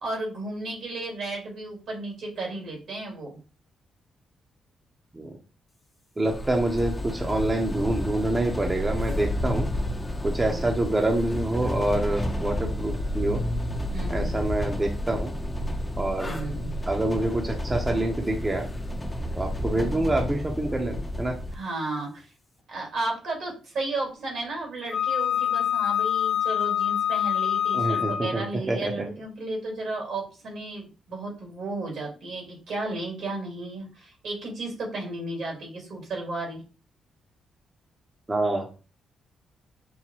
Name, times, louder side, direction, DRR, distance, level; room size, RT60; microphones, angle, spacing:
voice 1, 0.0-3.4 10.5-10.7 13.9-14.5 16.2-16.8 21.5-22.3 22.7-36.6, right 2 dB, 70° right, 0 dB, 1.9 m, -34 dB
sound 1, 6.2-21.5, left 1 dB, 20° left, 0.6 m, -30 dB
voice 2, 6.2-9.7 10.2-13.4 14.1-15.3 16.0-16.4 16.9-18.7 19.4-21.4 27.7-29.1 38.3-38.7, right 1 dB, 25° right, 2 dB, 0.7 m, -26 dB
Wind instrument woodwind instrument, 24.9-28.5, left 10 dB, 50° left, 1.1 m, -25 dB
5.6 x 2.1 x 2.9 m, 0.33 s
cardioid pair, 70°, 0 cm